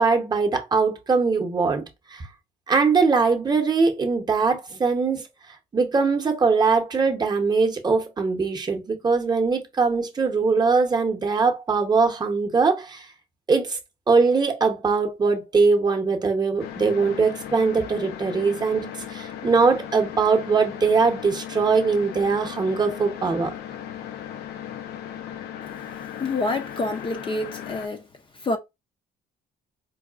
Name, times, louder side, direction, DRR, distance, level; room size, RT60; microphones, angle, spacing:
voice 1, 0.0-1.8 2.1-2.3 2.7-5.3 5.7-13.0 13.5-13.8 14.1-23.5, right 4 dB, 25° right, 0.8 m, -21 dB
sound 1, 16.6-27.9, left 10 dB, 75° left, 0.6 m, -37 dB
voice 2, 26.2-28.0 28.4-28.6, left 2 dB, 30° left, 0.5 m, -27 dB
4.6 x 2.3 x 2.3 m
cardioid pair, 110°, 17 cm